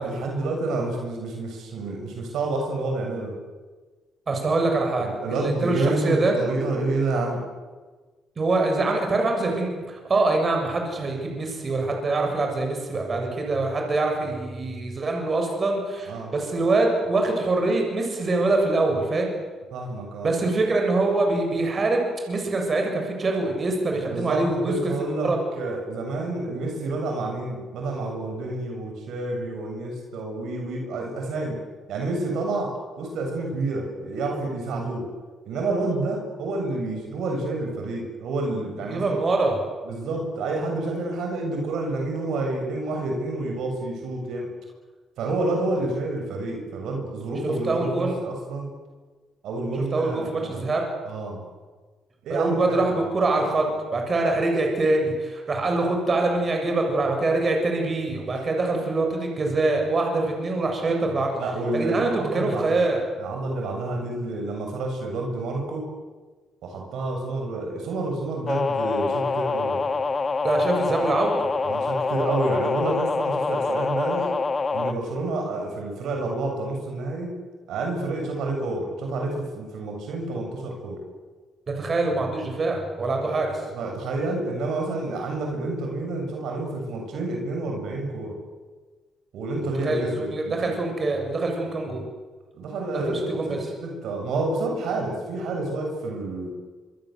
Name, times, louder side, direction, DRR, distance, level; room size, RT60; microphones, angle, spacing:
voice 1, 0.0-3.4 5.0-7.4 16.1-16.3 19.7-20.3 24.1-25.3 25.6-31.6 31.9-35.1 35.5-39.2 39.8-44.5 45.2-48.7 49.4-50.6 51.1-51.4 52.2-52.8 61.3-62.8 63.2-65.8 66.6-69.8 71.6-74.3 74.7-77.3 77.7-81.0 83.2-83.4 83.7-88.4 89.3-90.7 92.5-93.2 93.5-96.5, right 2 dB, 80° right, 1 dB, 7.4 m, -29 dB
voice 2, 4.3-6.4 8.4-19.3 20.2-24.8 25.2-25.4 38.9-39.6 47.4-48.2 49.7-50.8 52.3-53.6 53.9-61.3 61.7-63.0 70.4-71.5 81.8-83.5 89.6-92.0 92.9-93.7, right 2 dB, 40° right, 2 dB, 7.2 m, -24 dB
sound 1, 68.5-74.9, left 4 dB, 35° left, 1.5 m, -25 dB
26.0 x 24.5 x 8.1 m, 1.3 s
cardioid pair, 90°, 0 cm